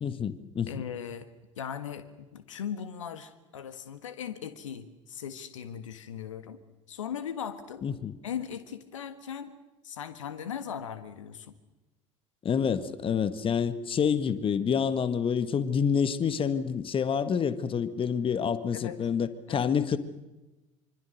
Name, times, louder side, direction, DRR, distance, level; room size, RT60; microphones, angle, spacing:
voice 1, 0.0-0.8 7.8-8.1 12.4-20.0, left 7 dB, 35° left, 13 dB, 1.7 m, -28 dB
voice 2, 0.7-1.3 1.6-6.6 6.9-7.9 8.2-9.5 9.8-11.5 18.7-19.0 19.5-19.7, left 8 dB, 75° left, 11 dB, 1.6 m, -38 dB
25.5 x 25.0 x 6.7 m, 1.1 s
figure-of-eight pair, 65°, 16 cm